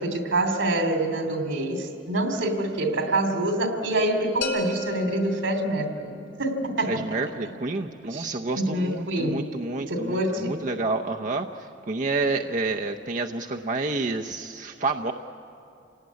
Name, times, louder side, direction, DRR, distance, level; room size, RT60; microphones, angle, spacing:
voice 1, 0.0-6.1 6.4-7.0 8.1-9.4 9.9-10.6, right 1 dB, 85° right, 5 dB, 3.0 m, -26 dB
sound 1, 4.4-6.2, left 1 dB, 85° left, 4.2 m, -33 dB
voice 2, 6.9-15.1, right 3 dB, 40° right, 2 dB, 0.7 m, -29 dB
27.5 x 18.0 x 9.5 m, 2.7 s
head